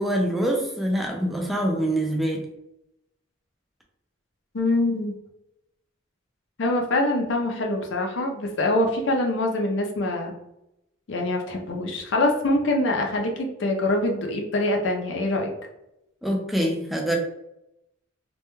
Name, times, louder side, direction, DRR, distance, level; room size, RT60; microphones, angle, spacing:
voice 1, 0.0-2.4 16.2-17.2, right 1 dB, ahead, 0 dB, 0.3 m, -25 dB
voice 2, 4.5-5.1 6.6-10.3 11.1-15.5, left 2 dB, 60° left, 2 dB, 0.5 m, -24 dB
2.2 x 2.1 x 3.0 m, 0.85 s
head